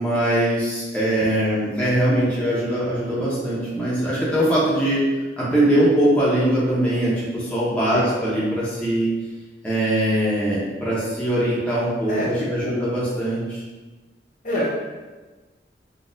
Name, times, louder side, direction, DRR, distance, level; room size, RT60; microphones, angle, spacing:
voice 1, 0.0-5.1 5.4-9.1 9.6-13.6, right 1 dB, 5° left, -9 dB, 0.7 m, -21 dB
voice 2, 12.1-12.8 14.4-14.7, left 1 dB, 45° left, -6 dB, 0.7 m, -26 dB
4.0 x 2.3 x 2.4 m, 1.3 s
head